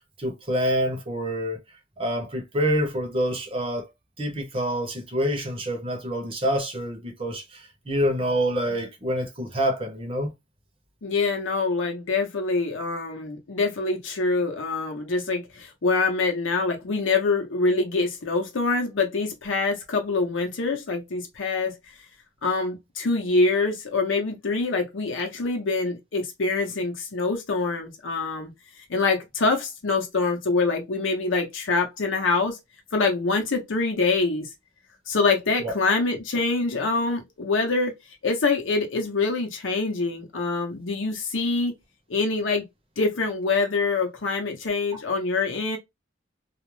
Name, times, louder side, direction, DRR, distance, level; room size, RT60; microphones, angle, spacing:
voice 1, 0.2-1.6 2.0-3.9 4.2-10.3 35.6-35.7, equal, 30° right, 0.7 m, -27 dB
voice 2, 11.0-21.8 22.4-28.5 28.9-32.6 32.9-34.5 35.1-37.9 38.2-41.7 42.1-42.6 43.0-45.8, left 3 dB, 85° left, 0.7 m, -25 dB
2.4 x 2.0 x 3.0 m
head